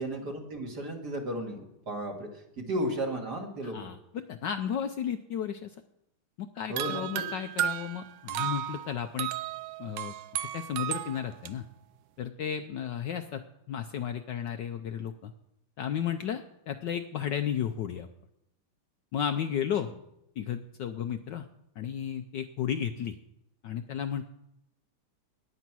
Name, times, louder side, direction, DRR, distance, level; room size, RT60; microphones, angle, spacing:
voice 1, 0.0-2.3 2.6-3.9 6.7-7.2, right 1 dB, 45° right, 1 dB, 2.8 m, -34 dB
voice 2, 3.6-5.7 6.4-9.3 9.8-10.1 10.5-11.7 12.2-13.4 13.7-15.3 15.8-18.1 19.1-19.9 20.4-21.5 21.8-23.1 23.6-24.3, left 9 dB, 70° left, 7 dB, 1.1 m, -33 dB
sound 1, 6.8-11.5, right 11 dB, 70° right, 1.2 m, -34 dB
18.0 x 10.0 x 6.1 m, 0.82 s
omnidirectional pair, 2.4 m